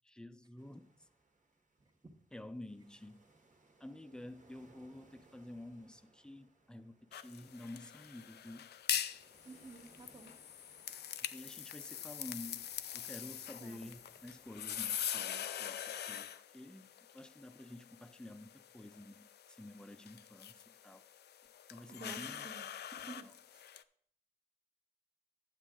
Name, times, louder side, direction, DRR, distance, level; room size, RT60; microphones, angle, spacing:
voice 1, 0.0-1.1 2.3-3.2 3.8-8.7 11.2-12.7 12.9-21.1 21.7-22.5 23.2-23.3, left 1 dB, 5° left, 0.6 m, -50 dB
sound 1, 0.6-15.3, right 3 dB, 50° right, 1.5 m, -68 dB
sound 2, 7.1-23.8, left 10 dB, 85° left, 0.4 m, -43 dB
voice 2, 9.4-10.3 13.6-13.9 21.9-22.7 23.0-23.7, right 3 dB, 25° right, 1.2 m, -52 dB
10.0 x 7.3 x 3.8 m
cardioid pair, 70°, 17 cm